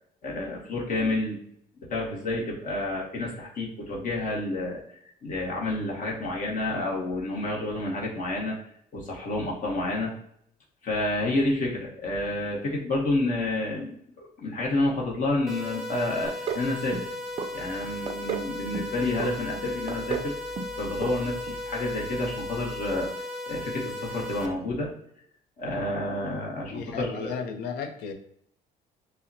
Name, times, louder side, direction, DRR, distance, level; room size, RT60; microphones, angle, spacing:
voice 1, 0.2-1.4 1.9-4.8 5.2-8.6 8.9-10.1 10.8-17.1 17.5-20.3 20.8-23.1 23.5-24.9 25.6-27.3, left 2 dB, 50° left, -2 dB, 1.0 m, -29 dB
sound 1, 15.5-24.5, left 2 dB, ahead, 0.7 m, -36 dB
sound 2, 16.2-16.7 16.9-17.5 17.8-18.5 18.7-19.3 19.6-20.3 20.6-20.8 21.0-21.1 21.5-21.6, right 6 dB, 35° right, 0.4 m, -32 dB
voice 2, 26.7-28.1, left 6 dB, 80° left, 4 dB, 0.6 m, -34 dB
5.5 x 2.1 x 2.6 m, 0.69 s
cardioid pair, 110°, 17 cm